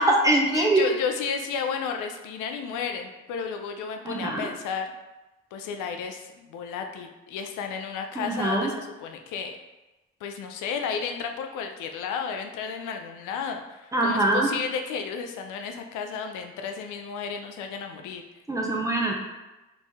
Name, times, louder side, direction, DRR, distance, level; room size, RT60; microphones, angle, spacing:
voice 1, 0.0-0.9 4.1-4.5 8.2-8.7 13.9-14.5 18.5-19.1, right 1 dB, 10° right, -1 dB, 0.6 m, -23 dB
voice 2, 0.5-4.9 5.5-9.5 10.2-18.2, left 6 dB, 85° left, 5 dB, 0.5 m, -33 dB
3.1 x 2.6 x 3.4 m, 1.1 s
cardioid pair, 90°, 30 cm